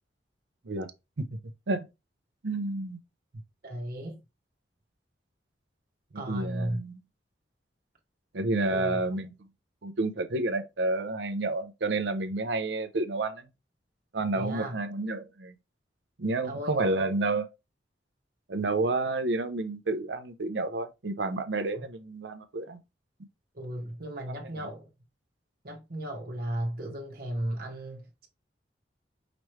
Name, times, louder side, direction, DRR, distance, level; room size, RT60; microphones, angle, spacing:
voice 1, 2.4-3.0 6.3-7.0 8.3-9.3 9.8-13.5 14.1-15.5 16.2-17.5 18.5-22.8 24.6-24.7, right 2 dB, 75° right, 0.7 m, -30 dB
voice 2, 3.6-4.2 6.1-6.8 8.7-9.0 14.3-14.8 16.4-17.0 21.7-21.8 23.5-24.9 25.6-28.3, right 1 dB, 55° right, 1.3 m, -35 dB
5.1 x 3.1 x 3.2 m
head